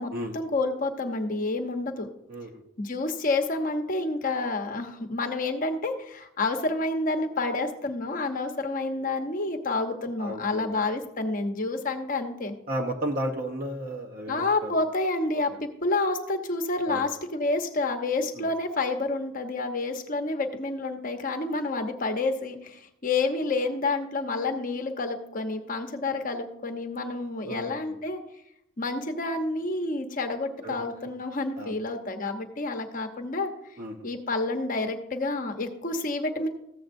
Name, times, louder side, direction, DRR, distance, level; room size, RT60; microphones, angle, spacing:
voice 1, 0.0-2.1 2.8-12.5 14.3-28.2 28.8-33.5 34.0-36.5, left 3 dB, 45° left, 5 dB, 0.9 m, -29 dB
voice 2, 10.2-10.8 12.7-14.8 16.9-17.0 18.3-18.5 27.4-27.7 30.6-30.7 31.6-31.8 33.8-34.1, right 1 dB, 45° right, 0 dB, 0.9 m, -33 dB
14.5 x 7.8 x 2.6 m, 0.78 s
head